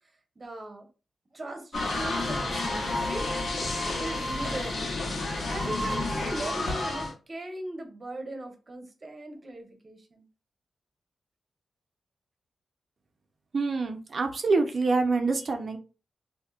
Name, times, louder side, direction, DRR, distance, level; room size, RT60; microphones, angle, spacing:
voice 1, 0.4-0.9 1.3-3.3 4.0-5.0 5.5-10.2, right 1 dB, 35° right, 5 dB, 1.0 m, -39 dB
sound 1, 1.7-7.1, left 2 dB, 70° left, 1.3 m, -30 dB
voice 2, 13.5-15.8, right 3 dB, 55° right, 5 dB, 0.7 m, -26 dB
4.3 x 2.8 x 2.4 m, 0.33 s
wide cardioid pair, 95°, 0 cm